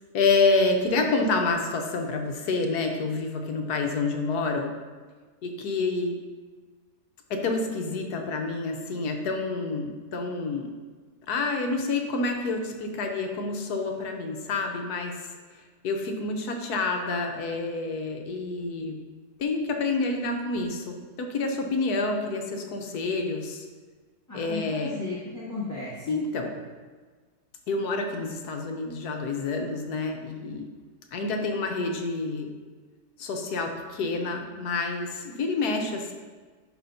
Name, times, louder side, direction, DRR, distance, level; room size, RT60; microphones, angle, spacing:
voice 1, 0.1-4.7 5.4-6.2 7.3-10.7 11.3-15.2 15.8-19.0 19.4-23.6 24.3-25.0 26.1-26.5 27.7-30.7 31.1-32.5 33.2-36.1, left 3 dB, 70° left, 3 dB, 1.3 m, -28 dB
voice 2, 24.3-26.5, left 3 dB, 10° left, -9 dB, 1.0 m, -35 dB
11.5 x 5.0 x 2.7 m, 1.4 s
omnidirectional pair, 1.8 m